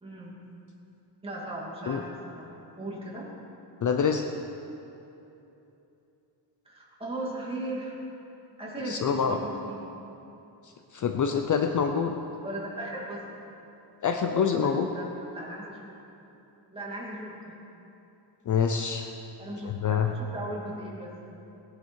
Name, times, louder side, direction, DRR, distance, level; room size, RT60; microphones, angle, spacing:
voice 1, 0.0-0.3 1.2-2.5 2.8-3.3 6.7-8.0 8.6-9.8 12.4-13.2 14.0-14.6 14.9-15.8 16.7-17.5 19.0-19.1 19.4-21.1, right 1 dB, 10° right, -5 dB, 2.4 m, -37 dB
voice 2, 3.8-4.2 8.9-9.4 10.6-12.1 14.0-14.9 18.5-19.1 19.6-20.1, left 7 dB, 45° left, 5 dB, 0.6 m, -26 dB
18.5 x 10.5 x 4.7 m, 2.9 s
wide cardioid pair, 175°, 43 cm